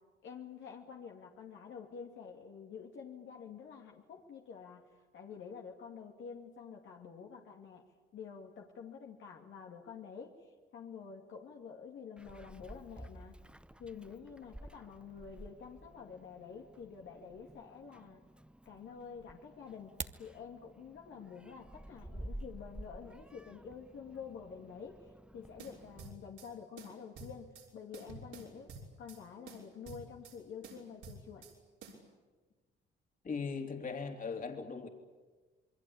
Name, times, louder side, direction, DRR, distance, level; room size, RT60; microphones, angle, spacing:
voice 1, 0.2-4.9 5.1-7.8 8.1-13.3 13.8-18.2 18.7-25.0 25.3-28.7 29.0-31.5, left 6 dB, 75° left, 1 dB, 2.6 m, -49 dB
Meow, 12.2-26.1, right 1 dB, 5° right, 0.9 m, -52 dB
sound 1, 19.7-20.3, right 5 dB, 35° right, 1.3 m, -42 dB
sound 2, 25.6-26.5 26.8-27.7 27.9-29.2 29.5-30.4 30.6-31.5 31.8-32.0, right 3 dB, 85° right, 5.8 m, -50 dB
voice 2, 33.2-34.9, left 5 dB, 45° left, 4 dB, 3.5 m, -39 dB
27.5 x 22.0 x 8.8 m, 1.3 s
cardioid pair, 90°, 20 cm